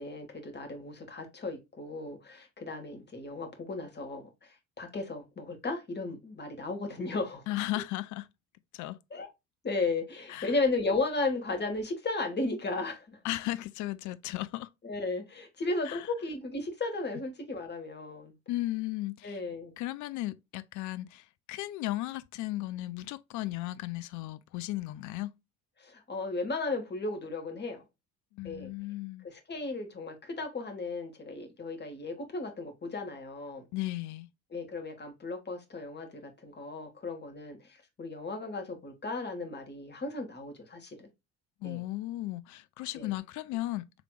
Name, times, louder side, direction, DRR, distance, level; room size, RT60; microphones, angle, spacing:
voice 1, 0.0-7.4 9.1-9.3 9.6-13.2 14.8-18.3 19.2-19.7 25.8-27.8 28.4-28.7 29.2-33.7 34.5-41.1 41.6-41.8 42.9-43.1, left 3 dB, 25° left, 1.5 m, -35 dB
voice 2, 7.5-8.3 8.7-9.0 10.3-10.5 13.2-14.7 15.8-16.1 18.5-19.4 19.8-25.3 28.3-29.3 33.7-34.3 41.6-43.8, left 17 dB, 45° left, 0.5 m, -35 dB
4.8 x 3.2 x 2.3 m
figure-of-eight pair, 55°, 43 cm